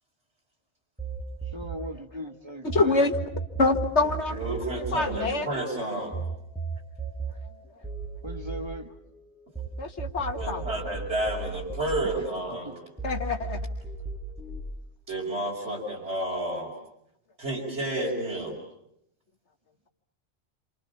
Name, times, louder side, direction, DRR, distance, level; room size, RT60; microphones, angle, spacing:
sound 1, 1.0-2.8 3.1-9.7 10.0-12.7 13.0-14.6, right 5 dB, 5° right, 8.1 m, -35 dB
voice 1, 1.5-3.1 8.2-8.9 12.1-12.2 12.6-12.7, equal, 25° right, 5 dB, 2.1 m, -38 dB
voice 2, 2.6-3.1 3.6-4.4 4.9-5.5 9.8-10.6 13.0-13.6, left 3 dB, 85° left, 6 dB, 2.1 m, -25 dB
voice 3, 4.3-6.3 10.3-12.8 15.1-16.7 17.4-18.6, right 1 dB, 80° right, -4 dB, 5.6 m, -31 dB
28.0 x 27.5 x 7.2 m, 0.77 s
omnidirectional pair, 1.1 m